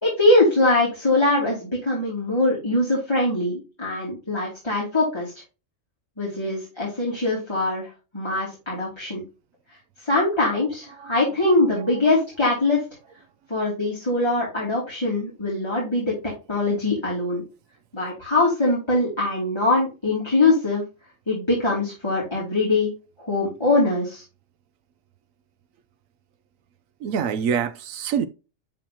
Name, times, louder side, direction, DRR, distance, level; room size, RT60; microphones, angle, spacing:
voice 1, 0.0-5.3 6.2-9.2 10.0-12.8 13.5-16.1 16.5-17.4 17.9-20.8 21.3-22.9 23.2-24.2, left 2 dB, 20° left, 3.2 m, -22 dB
voice 2, 27.0-28.3, right 7 dB, 85° right, 1.1 m, -25 dB
11.5 x 3.9 x 2.9 m
omnidirectional pair, 1.3 m